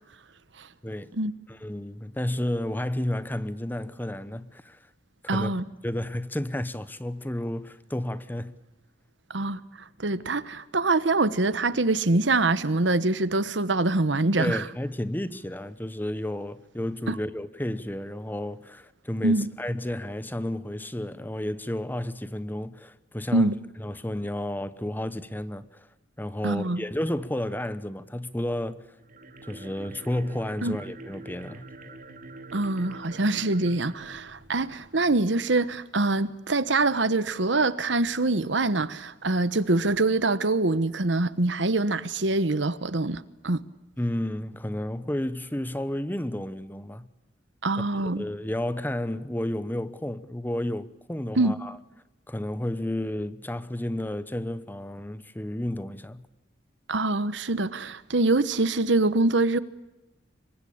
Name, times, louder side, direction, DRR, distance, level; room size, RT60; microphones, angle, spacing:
voice 1, 0.8-1.1 1.5-4.8 5.3-5.5 5.8-8.5 14.4-23.5 23.8-25.9 26.2-28.8 29.4-31.7 44.0-47.1 47.7-51.8 52.3-56.2, left 1 dB, 10° left, 1.0 m, -32 dB
voice 2, 5.3-5.6 9.3-9.6 10.0-14.6 17.1-17.2 19.2-19.5 23.3-23.6 26.4-26.8 30.6-30.8 32.5-43.6 47.6-48.2 51.4-51.5 56.9-59.6, right 2 dB, 75° right, 1.2 m, -24 dB
sound 1, 29.0-35.2, right 2 dB, 45° right, 3.3 m, -45 dB
26.5 x 23.5 x 8.7 m
head